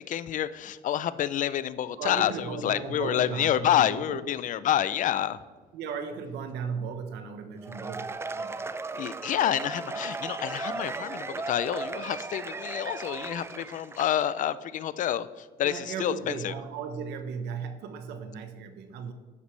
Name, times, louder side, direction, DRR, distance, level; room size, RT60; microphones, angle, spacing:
voice 1, 0.0-5.4 9.0-16.5, left 11 dB, 50° left, 15 dB, 0.5 m, -28 dB
voice 2, 2.0-4.2 5.7-8.7 15.6-19.1, right 6 dB, 85° right, 8 dB, 1.2 m, -36 dB
Cheering / Applause / Crowd, 7.6-14.4, right 3 dB, 15° right, 0.4 m, -36 dB
12.0 x 8.1 x 3.3 m, 1.4 s
cardioid pair, 110°, 17 cm